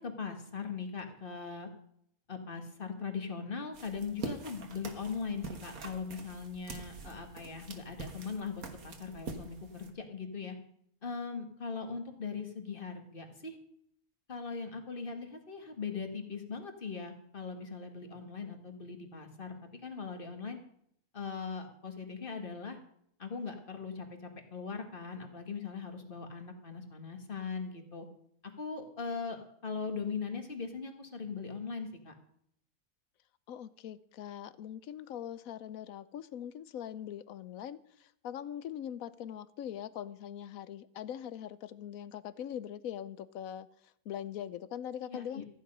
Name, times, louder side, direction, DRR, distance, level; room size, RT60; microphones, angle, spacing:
voice 1, 0.0-1.7 2.3-10.6 11.0-13.6 14.3-20.6 21.1-22.8 23.2-28.1 28.6-32.1 45.0-45.4, left 5 dB, 40° left, 5 dB, 1.9 m, -40 dB
sound 1, 3.7-9.9, right 4 dB, 80° right, 1.9 m, -45 dB
voice 2, 33.5-43.7 44.1-45.4, left 10 dB, 75° left, 16 dB, 1.1 m, -42 dB
15.0 x 10.0 x 5.5 m, 0.70 s
omnidirectional pair, 1.5 m